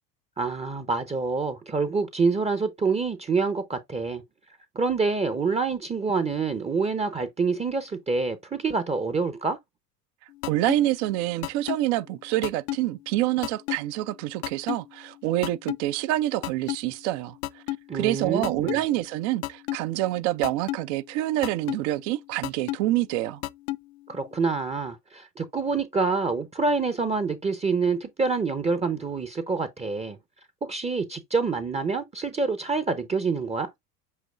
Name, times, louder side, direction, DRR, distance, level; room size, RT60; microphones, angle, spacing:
voice 1, 0.4-4.2 4.7-9.6 17.9-18.8 24.1-30.2 30.6-33.7, right 4 dB, 15° right, 0.7 m, -26 dB
sound 1, 10.4-10.8 11.4-11.8 12.4-12.8 13.4-13.8 14.4-14.8 15.4-15.8 16.4-16.8 17.4-17.8 18.4-18.8 19.4-19.8 20.4-20.8 21.4-21.8 22.4-22.8 23.4-23.8, left 18 dB, 45° left, 0.6 m, -29 dB
voice 2, 10.5-17.4 17.9-23.4, right 15 dB, 45° right, 0.6 m, -27 dB
7.7 x 3.0 x 2.2 m
figure-of-eight pair, 80°, 49 cm